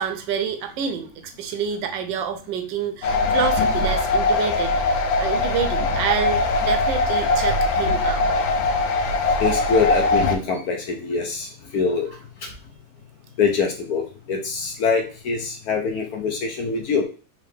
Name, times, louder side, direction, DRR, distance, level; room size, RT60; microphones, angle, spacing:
voice 1, 0.0-8.2, right 7 dB, 85° right, 7 dB, 1.3 m, -28 dB
sound 1, 3.0-10.4, left 2 dB, 85° left, 1.3 m, -21 dB
voice 2, 9.4-12.1 12.4-12.5 13.4-17.1, left 5 dB, 65° left, 2 dB, 1.0 m, -24 dB
3.6 x 3.3 x 3.4 m, 0.37 s
omnidirectional pair, 2.0 m